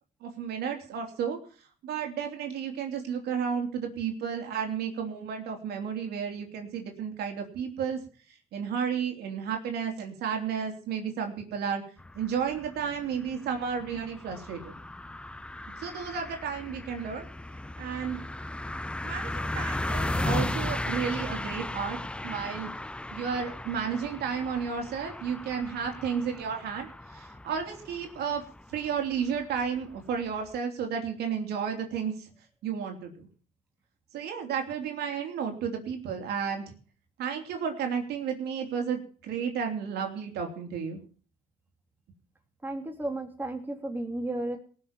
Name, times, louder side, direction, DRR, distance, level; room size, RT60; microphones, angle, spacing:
voice 1, 0.2-1.4 1.8-8.0 8.5-11.8 12.1-14.7 15.8-17.3 17.8-18.2 19.0-22.0 22.2-22.7 23.1-28.4 28.7-32.3 32.6-33.3 34.1-36.7 37.2-41.0, right 7 dB, 75° right, 4 dB, 3.2 m, -32 dB
sound 1, 12.0-30.6, left 1 dB, 5° left, 0.5 m, -36 dB
voice 2, 42.6-44.6, right 1 dB, 10° right, 3 dB, 3.2 m, -33 dB
18.5 x 6.5 x 7.2 m, 0.42 s
cardioid pair, 110°, 17 cm